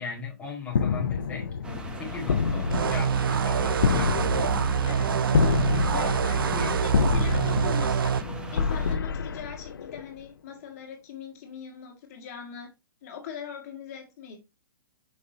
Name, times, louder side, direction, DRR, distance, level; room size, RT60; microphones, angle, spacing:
voice 1, 0.0-4.1 6.3-6.7, left 5 dB, 10° left, 2.0 m, -37 dB
sound 1, 0.7-10.2, left 5 dB, 85° left, 0.7 m, -28 dB
sound 2, 1.6-9.0, right 2 dB, 10° right, 1.0 m, -39 dB
sound 3, 2.7-8.2, right 7 dB, 85° right, 0.5 m, -26 dB
voice 2, 4.8-5.3 5.8-8.1 8.5-12.7 13.0-14.4, left 7 dB, 45° left, 2.0 m, -40 dB
6.3 x 5.5 x 2.9 m
hypercardioid pair, 145°, 11 cm